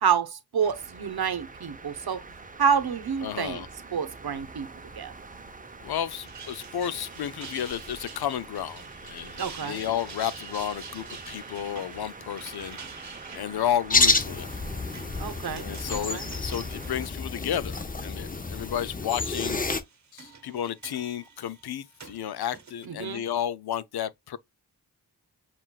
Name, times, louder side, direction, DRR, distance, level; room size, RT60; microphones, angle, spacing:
voice 1, 0.0-2.2 2.6-3.6 3.9-4.7 5.0-5.1 9.4-9.8 15.2-16.3 22.9-23.2, right 7 dB, 70° right, 0.8 m, -28 dB
sound 1, 0.6-17.1, right 3 dB, 20° right, 0.6 m, -45 dB
voice 2, 3.2-3.7 5.8-12.8 13.3-14.5 15.6-19.6 20.1-24.4, left 10 dB, 70° left, 0.5 m, -32 dB
sound 2, 6.1-17.8 18.2-18.8 19.7-22.9, right 5 dB, 45° right, 0.9 m, -47 dB
sound 3, 13.9-19.8, left 3 dB, 20° left, 0.6 m, -28 dB
7.3 x 2.5 x 2.2 m
wide cardioid pair, 65°, 39 cm